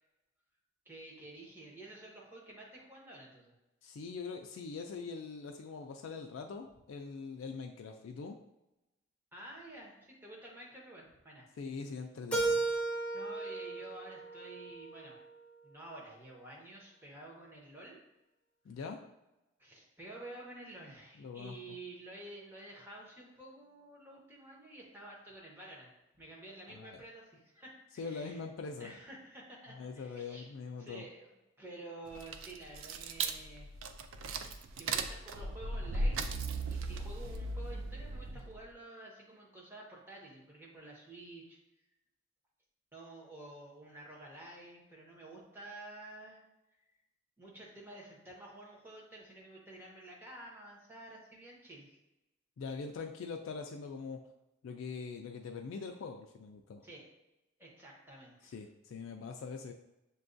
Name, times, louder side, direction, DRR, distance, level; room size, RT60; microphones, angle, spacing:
voice 1, 0.8-3.5 9.3-11.5 13.1-15.2 15.6-18.0 19.6-25.9 26.2-28.4 28.8-30.5 30.8-31.3 31.6-33.7 34.8-36.3 36.7-41.6 42.9-46.4 47.4-51.9 56.8-57.0 57.6-58.6, right 2 dB, 10° right, -4 dB, 0.9 m, -50 dB
voice 2, 3.8-8.4 11.6-12.6 18.7-19.0 21.2-21.6 26.7-27.0 28.0-28.9 29.7-31.0 52.6-54.2 54.6-56.8 58.5-59.7, left 4 dB, 85° left, 3 dB, 0.3 m, -43 dB
Keyboard (musical), 12.3-15.2, right 3 dB, 5° left, 0.5 m, -35 dB
sound 1, 32.1-38.6, right 3 dB, 85° right, 0.3 m, -37 dB
6.8 x 2.3 x 2.5 m, 0.94 s
head